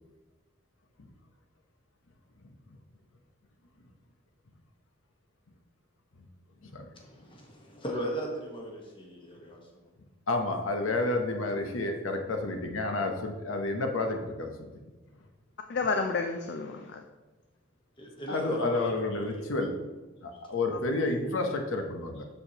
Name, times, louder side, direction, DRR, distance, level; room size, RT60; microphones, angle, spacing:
voice 1, 6.9-9.6 18.0-18.9 21.3-21.4, right 1 dB, 25° left, 0 dB, 1.2 m, -37 dB
voice 2, 10.3-14.7 18.3-19.7 20.2-22.2, left 2 dB, 85° left, 4 dB, 0.8 m, -30 dB
voice 3, 15.7-17.0 18.8-19.2 20.7-21.1, left 4 dB, 55° left, 5 dB, 0.4 m, -32 dB
7.0 x 6.5 x 2.9 m, 1.2 s
head